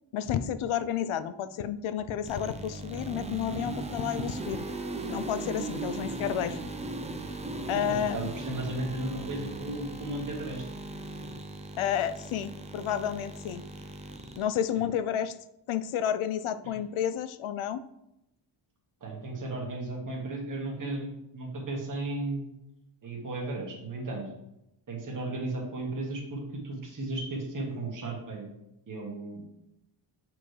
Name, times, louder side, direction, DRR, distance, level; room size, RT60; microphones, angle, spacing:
voice 1, 0.1-4.6 5.1-6.7 7.7-8.3 11.8-13.6 14.4-15.3 15.7-17.8, left 9 dB, 75° left, 14 dB, 0.6 m, -31 dB
sound 1, 2.2-14.4, right 2 dB, 15° right, 0.5 m, -38 dB
voice 2, 7.7-10.6 16.6-16.8 19.0-22.5 23.0-24.3 24.9-28.5 28.9-29.6, right 2 dB, 40° right, -2 dB, 1.6 m, -35 dB
7.4 x 4.6 x 3.3 m, 0.85 s
wide cardioid pair, 160°, 50 cm